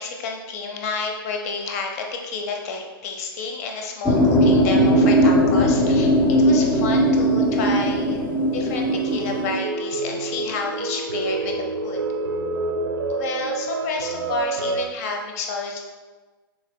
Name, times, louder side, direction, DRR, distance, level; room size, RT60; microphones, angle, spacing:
voice 1, 0.0-8.2 8.5-12.0 13.1-15.8, left 3 dB, 40° left, 2 dB, 0.8 m, -30 dB
sound 1, 4.0-9.6, equal, 10° left, 0.5 m, -18 dB
sound 2, 8.2-14.9, right 3 dB, 70° right, 0.6 m, -28 dB
6.0 x 3.9 x 2.2 m, 1.3 s
figure-of-eight pair, 120°, 13 cm